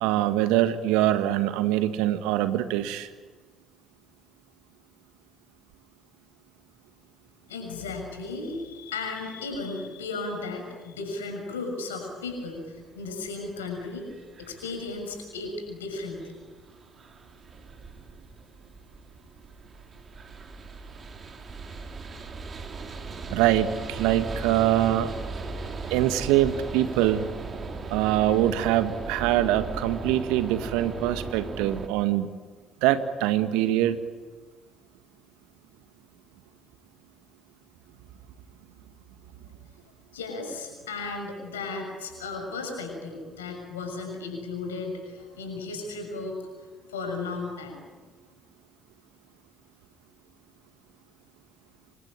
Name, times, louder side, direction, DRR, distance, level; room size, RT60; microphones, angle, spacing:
voice 1, 0.0-3.1 23.3-25.1 25.9-27.3 27.9-32.3 32.8-34.0, right 13 dB, 70° right, 11 dB, 1.7 m, -24 dB
voice 2, 7.5-14.1 14.4-16.4 40.1-46.4 46.9-47.8, left 3 dB, 85° left, 3 dB, 6.6 m, -35 dB
sound 1, 12.3-31.9, right 4 dB, 40° right, 4.0 m, -38 dB
27.5 x 24.0 x 8.9 m, 1.4 s
figure-of-eight pair, 50°, 0 cm